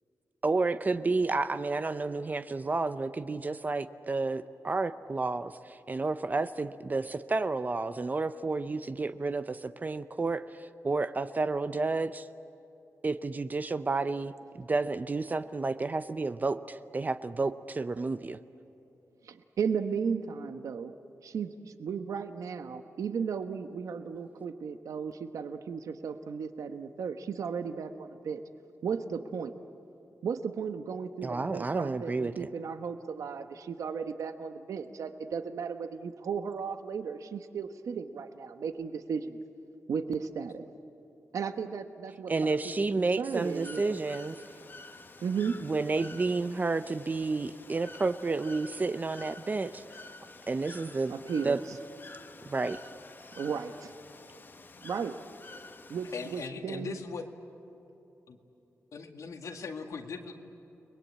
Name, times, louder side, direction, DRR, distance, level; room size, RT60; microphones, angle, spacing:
voice 1, 0.4-12.3 13.0-18.4 31.2-32.5 42.3-44.4 45.6-49.8 50.5-51.1 51.4-51.6 52.5-52.8, right 3 dB, 30° right, 11 dB, 0.6 m, -31 dB
voice 2, 19.2-20.9 21.2-28.4 28.8-29.5 30.2-39.4 39.9-40.7 41.3-42.6 43.0-43.8 45.2-45.6 51.1-51.6 53.4-53.9 54.8-55.2 55.9-57.0, right 6 dB, 85° right, 8 dB, 1.1 m, -35 dB
Bird / Water, 43.3-56.5, left 3 dB, 40° left, 1.4 m, -50 dB
voice 3, 56.1-57.2 58.3-58.4 58.9-60.3, left 5 dB, 80° left, 4 dB, 2.1 m, -39 dB
30.0 x 21.5 x 8.7 m, 3.0 s
wide cardioid pair, 115°, 5 cm